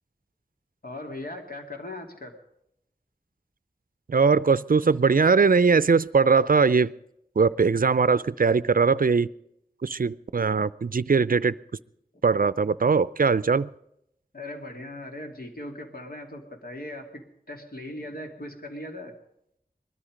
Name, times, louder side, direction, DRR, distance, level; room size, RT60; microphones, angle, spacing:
voice 1, 0.8-2.4 14.3-19.1, left 1 dB, 65° left, 2 dB, 2.8 m, -39 dB
voice 2, 4.1-6.9 7.4-9.3 9.8-11.6 12.2-13.7, right 5 dB, 60° right, 18 dB, 0.5 m, -21 dB
20.5 x 13.0 x 5.1 m, 0.78 s
wide cardioid pair, 40°, 16 cm